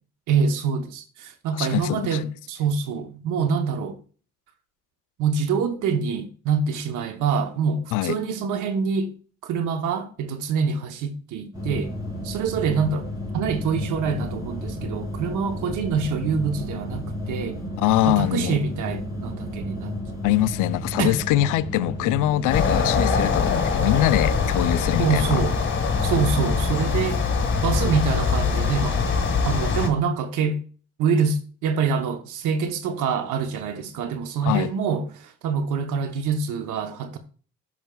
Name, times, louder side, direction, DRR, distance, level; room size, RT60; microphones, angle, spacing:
voice 1, 0.3-4.0 5.2-9.1 9.4-11.9 12.2-13.1 13.3-17.6 18.1-20.0 21.0-21.1 25.0-25.6 26.0-27.2 27.6-29.0 29.4-30.6 31.0-37.2, right 5 dB, 85° right, 0.9 m, -25 dB
voice 2, 1.5-2.2 7.9-8.2 17.8-18.6 20.2-25.4 34.4-34.7, left 15 dB, 90° left, 0.5 m, -23 dB
sound 1, 11.5-22.6, left 1 dB, 10° right, 3.9 m, -32 dB
sound 2, 22.5-29.9, left 5 dB, 40° left, 1.7 m, -23 dB
10.5 x 6.2 x 2.3 m
cardioid pair, 90°, 30 cm